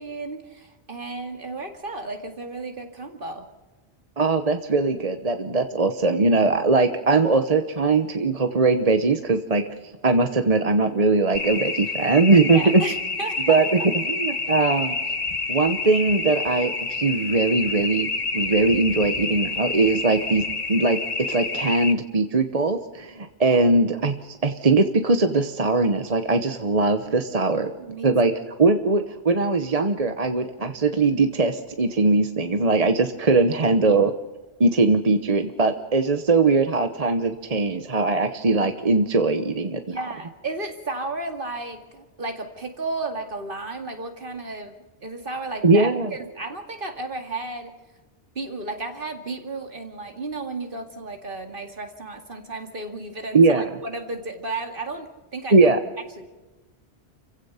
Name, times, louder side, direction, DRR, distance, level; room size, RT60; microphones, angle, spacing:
voice 1, 0.0-3.5 12.5-13.6 23.5-23.6 27.8-28.1 28.6-28.8 33.3-33.5 39.9-44.8 45.0-47.7 48.3-55.7 56.2-56.3, right 3 dB, 55° right, 5 dB, 2.4 m, -33 dB
voice 2, 4.2-12.8 13.5-15.0 15.5-21.0 21.3-27.7 28.0-28.3 28.6-34.1 34.6-40.0 45.6-46.1 53.3-53.7 55.5-55.8, right 3 dB, 35° right, 7 dB, 1.1 m, -20 dB
sound 1, 11.3-21.9, left 4 dB, 40° left, 1.2 m, -28 dB
29.0 x 16.0 x 5.7 m, 1.2 s
omnidirectional pair, 1.1 m